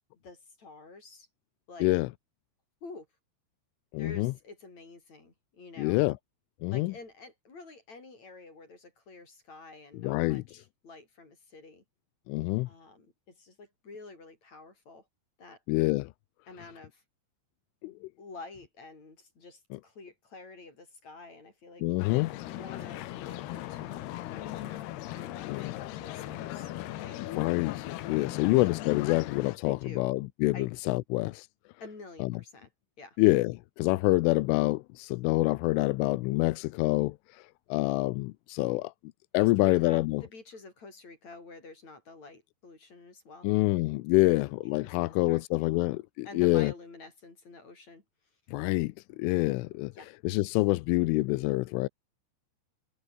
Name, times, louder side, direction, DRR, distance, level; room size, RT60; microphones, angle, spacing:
voice 1, 0.2-1.3 1.7-1.9 2.8-3.1 4.0-6.0 6.7-11.8 12.7-15.1 15.4-15.6 16.5-17.0 17.8-21.8 22.5-24.9 25.1-27.2 28.3-28.5 29.6-30.0 30.5-30.7 31.8-32.7 33.0-33.2 39.4-43.5 44.2-44.3 44.8-45.8 46.2-48.0 49.9-50.1, left 3 dB, 35° left, 6.3 m, -49 dB
voice 2, 1.8-2.1 3.9-4.3 5.8-6.2 6.6-6.9 9.9-10.4 12.3-12.7 15.7-16.1 17.8-18.1 19.7-19.8 21.8-22.3 25.4-25.7 27.2-31.5 32.2-32.3 33.2-38.9 39.3-40.2 43.4-46.7 48.5-49.9 50.2-51.9, left 21 dB, 85° left, 3.3 m, -27 dB
sound 1, 22.0-29.6, left 15 dB, 70° left, 2.8 m, -38 dB
omnidirectional pair, 5.5 m